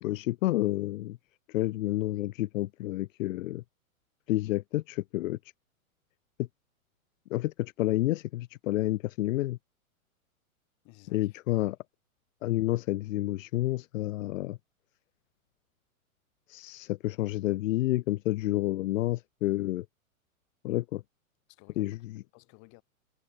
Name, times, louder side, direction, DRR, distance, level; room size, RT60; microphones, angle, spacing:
voice 1, 0.0-1.2 1.5-3.6 4.3-5.4 6.4-6.5 7.3-9.6 11.1-11.7 12.4-14.6 16.5-19.9 20.6-21.0 21.8-22.0, left 16 dB, 65° left, 0.5 m, -29 dB
voice 2, 10.8-11.8 21.5-22.8, left 31 dB, 40° left, 3.2 m, -56 dB
hypercardioid pair, 110°, 43 cm